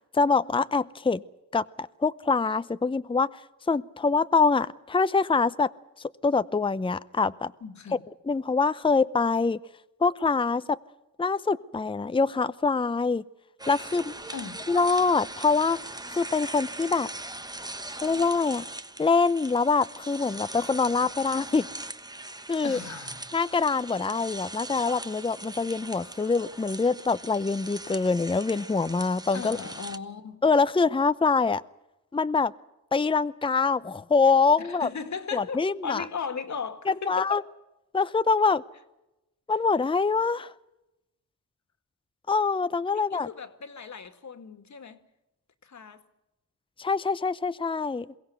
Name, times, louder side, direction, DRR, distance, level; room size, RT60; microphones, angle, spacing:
voice 1, 0.1-1.2 1.5-3.4 3.7-5.7 6.2-7.5 8.3-9.6 10.0-10.8 11.2-13.2 13.7-14.1 14.7-15.8 16.1-17.1 18.0-18.6 19.0-21.7 22.5-22.8 23.3-29.6 30.4-31.6 32.1-32.5 32.9-34.9 35.3-36.0 36.9-37.4 37.9-38.6 39.5-40.5 42.3-43.3 46.8-48.1, left 4 dB, 15° left, 0.7 m, -24 dB
voice 2, 7.6-8.0 14.3-14.7 22.6-23.3 29.3-30.4 34.6-37.4 42.9-45.0 45.6-46.0, left 6 dB, 55° left, 2.1 m, -37 dB
sound 1, 13.6-30.0, right 2 dB, 10° right, 1.2 m, -40 dB
22.5 x 16.5 x 8.2 m
cardioid pair, 65°, 33 cm